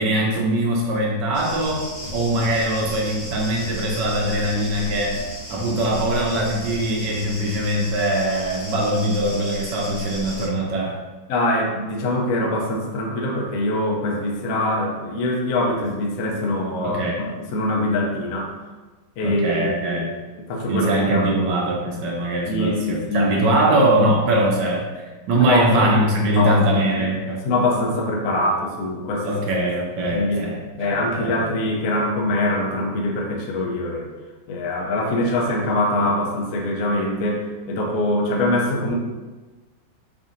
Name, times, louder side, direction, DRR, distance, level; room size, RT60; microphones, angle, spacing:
voice 1, 0.0-5.2 5.5-11.0 16.8-17.2 19.2-20.2 20.7-24.9 25.3-27.4 29.2-31.3, right 1 dB, 75° right, -1 dB, 1.2 m, -22 dB
sound 1, 1.3-10.5, equal, 45° left, 1.1 m, -35 dB
sound 2, 1.6-7.9, right 1 dB, 85° left, 1.7 m, -40 dB
voice 2, 11.3-17.0 17.5-18.5 19.2-20.0 20.5-21.5 22.5-23.6 25.3-25.9 26.3-27.1 27.4-29.6 30.1-30.5 30.8-34.1 34.5-38.9, left 1 dB, 65° left, 0 dB, 0.9 m, -23 dB
4.8 x 2.7 x 2.5 m, 1.2 s
omnidirectional pair, 2.0 m